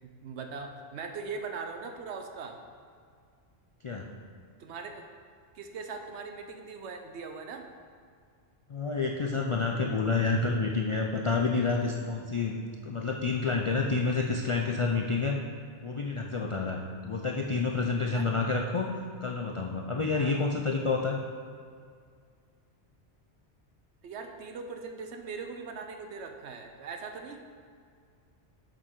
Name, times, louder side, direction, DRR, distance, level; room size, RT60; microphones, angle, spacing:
voice 1, 0.0-2.6 4.6-5.0 5.5-7.7 18.1-18.3 20.1-20.4 24.0-27.4, right 4 dB, 75° right, 5 dB, 1.0 m, -40 dB
voice 2, 8.7-15.4 15.8-21.2, left 4 dB, 55° left, 1 dB, 0.3 m, -29 dB
7.6 x 6.8 x 3.8 m, 2.1 s
omnidirectional pair, 1.1 m